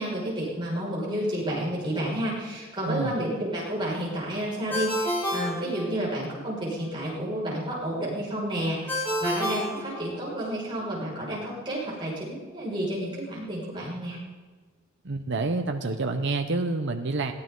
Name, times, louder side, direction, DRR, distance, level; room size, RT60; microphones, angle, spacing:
voice 1, 0.0-14.2, right 1 dB, 20° right, -6 dB, 6.0 m, -30 dB
Ringtone, 4.7-6.4 8.9-10.5, left 1 dB, 10° left, 3.2 m, -30 dB
voice 2, 15.0-17.3, right 3 dB, 55° right, 5 dB, 0.9 m, -28 dB
22.0 x 15.5 x 4.0 m, 1.4 s
head